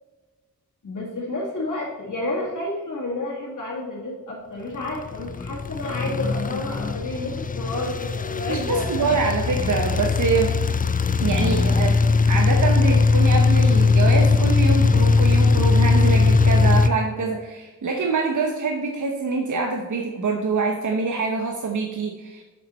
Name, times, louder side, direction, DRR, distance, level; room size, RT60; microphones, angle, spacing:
voice 1, 0.8-9.1, left 2 dB, 65° left, -6 dB, 2.1 m, -30 dB
sound 1, 4.9-16.9, left 4 dB, 30° left, 0.4 m, -19 dB
voice 2, 8.5-10.5 11.2-12.0 12.3-22.4, right 4 dB, 65° right, 2 dB, 0.9 m, -25 dB
7.0 x 6.6 x 4.2 m, 1.2 s
wide cardioid pair, 100°, 32 cm